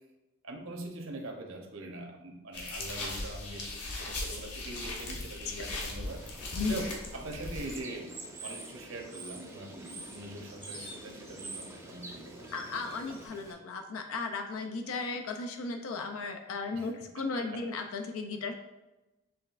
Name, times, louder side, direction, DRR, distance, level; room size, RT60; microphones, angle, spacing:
voice 1, 0.4-6.2 6.7-12.5 16.7-17.4, right 2 dB, 65° right, 2 dB, 0.8 m, -43 dB
sound 1, 2.5-7.8, left 2 dB, 90° left, 0.9 m, -38 dB
Bird / Water, 6.1-13.5, right 3 dB, 10° right, 0.3 m, -48 dB
sound 2, 6.4-13.3, left 1 dB, 25° left, 0.8 m, -51 dB
voice 2, 12.5-18.5, left 4 dB, 70° left, 4 dB, 0.4 m, -35 dB
6.9 x 3.1 x 2.4 m, 1.0 s
head